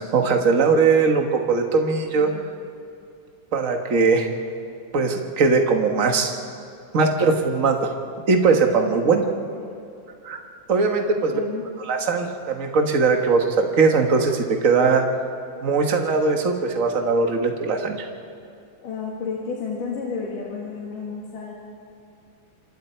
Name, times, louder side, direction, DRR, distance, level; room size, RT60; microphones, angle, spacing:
voice 1, 0.0-2.3 3.5-4.3 4.9-6.3 6.9-7.9 8.3-9.2 10.2-10.4 10.7-11.4 11.9-15.0 15.6-18.1, right 4 dB, 45° right, 3 dB, 1.1 m, -20 dB
voice 2, 2.1-2.5 9.3-9.7 11.3-11.6 18.8-21.5, left 5 dB, 80° left, -4 dB, 3.8 m, -32 dB
27.0 x 26.0 x 4.5 m, 2.4 s
omnidirectional pair, 3.7 m